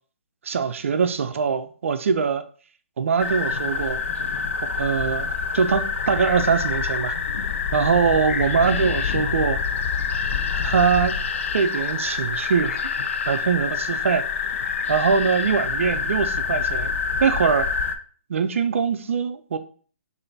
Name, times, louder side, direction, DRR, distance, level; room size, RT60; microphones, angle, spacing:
voice 1, 0.4-2.4 3.0-4.0 4.8-7.2 7.7-9.6 10.6-11.2 11.5-12.8 13.3-14.3 14.9-16.9 17.2-17.7 18.3-19.6, right 6 dB, 70° right, 0.4 m, -22 dB
sound 1, 3.2-17.9, left 5 dB, 70° left, 0.5 m, -26 dB
5.0 x 2.6 x 2.7 m
hypercardioid pair, 150°, 7 cm